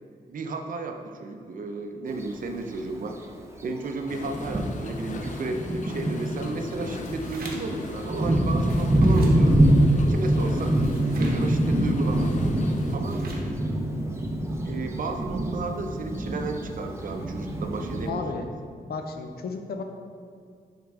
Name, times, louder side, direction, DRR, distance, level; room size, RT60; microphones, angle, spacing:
voice 1, 0.3-3.2 3.6-9.5 9.9-10.8 11.2-12.3 12.9-13.2 14.6-18.2, right 3 dB, 60° right, 5 dB, 0.6 m, -33 dB
Thunder, 2.1-2.2 3.2-3.3 3.9-4.0 4.3-18.1, right 1 dB, 15° right, 0.5 m, -25 dB
sound 1, 4.1-13.0, left 3 dB, 55° left, 0.5 m, -39 dB
sound 2, 7.0-7.8 8.5-9.4 10.5-11.4 12.7-13.5, right 3 dB, 80° right, 1.0 m, -45 dB
voice 2, 18.1-18.5 18.9-19.8, left 4 dB, 90° left, 5 dB, 0.7 m, -33 dB
10.5 x 3.6 x 3.5 m, 2.2 s
wide cardioid pair, 165°, 16 cm